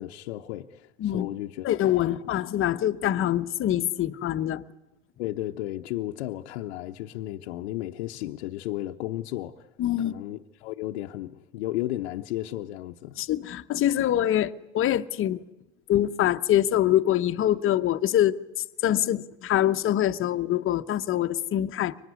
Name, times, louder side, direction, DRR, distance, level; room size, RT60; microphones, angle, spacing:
voice 1, 0.0-2.2 5.2-9.7 10.0-13.2, left 15 dB, 80° left, 0.9 m, -34 dB
voice 2, 1.6-4.6 9.8-10.2 13.2-15.4 15.9-18.4 18.8-21.9, left 12 dB, 40° left, 1.0 m, -24 dB
24.0 x 20.0 x 9.5 m
supercardioid pair, 100°, 33 cm